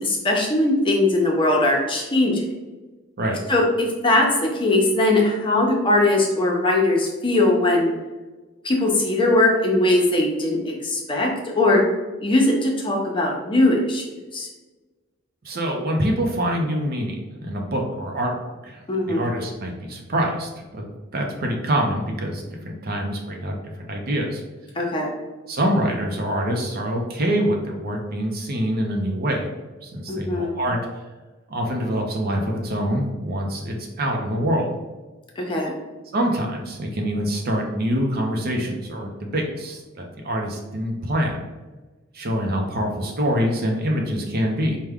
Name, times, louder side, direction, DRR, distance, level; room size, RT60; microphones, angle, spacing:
voice 1, 0.0-2.4 3.5-7.9 8.6-11.3 11.5-11.8 12.2-14.0 14.3-14.5 18.9-19.2 24.8-25.1 30.1-30.5 35.4-35.7, left 2 dB, 25° left, -1 dB, 0.7 m, -20 dB
voice 2, 15.4-18.8 19.1-24.4 25.5-29.5 29.8-30.8 31.5-34.7 36.1-41.4 42.1-44.8, equal, 50° right, 1 dB, 0.6 m, -25 dB
4.7 x 2.2 x 3.5 m, 1.2 s
head